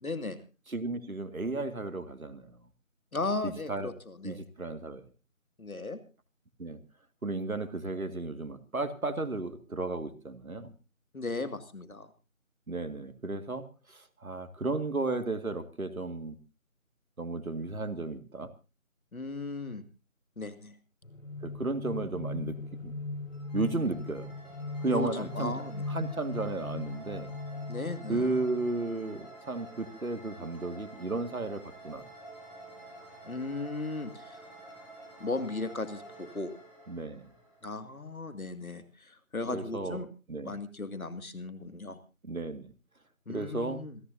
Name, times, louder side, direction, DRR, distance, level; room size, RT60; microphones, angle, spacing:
voice 1, 0.0-0.4 3.1-4.4 5.6-6.0 11.1-12.1 19.1-19.8 20.4-20.7 24.8-25.8 27.7-28.3 33.2-34.4 35.2-36.5 37.6-40.1 40.4-42.0 43.3-44.0, left 3 dB, 90° left, 10 dB, 2.4 m, -36 dB
voice 2, 0.7-2.6 3.4-3.9 4.2-5.0 6.6-6.8 7.2-10.7 12.7-16.4 17.2-18.5 21.4-22.6 22.8-22.9 23.5-24.3 24.8-25.5 25.9-27.3 28.1-32.0 36.9-37.3 39.5-40.6 42.2-42.7 43.3-43.8, right 2 dB, 85° right, 10 dB, 2.2 m, -34 dB
sound 1, 21.0-28.9, left 3 dB, 70° left, 5.7 m, -39 dB
sound 2, 23.3-38.1, right 2 dB, 5° left, 2.0 m, -50 dB
27.0 x 11.5 x 2.7 m, 0.32 s
figure-of-eight pair, 175°, 41 cm